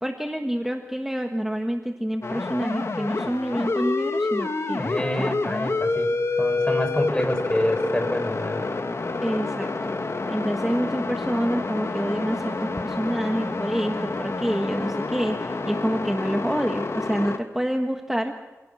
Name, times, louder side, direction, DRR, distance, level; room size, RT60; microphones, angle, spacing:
voice 1, 0.0-4.8 5.2-5.4 9.2-10.0 10.3-18.3, equal, 5° right, 3 dB, 1.5 m, -27 dB
sound 1, 2.2-17.4, left 3 dB, 60° left, 1.3 m, -28 dB
voice 2, 4.8-6.1 6.4-8.6, left 1 dB, 15° left, 6 dB, 4.2 m, -27 dB
27.5 x 17.5 x 6.3 m, 1.2 s
wide cardioid pair, 80°, 5 cm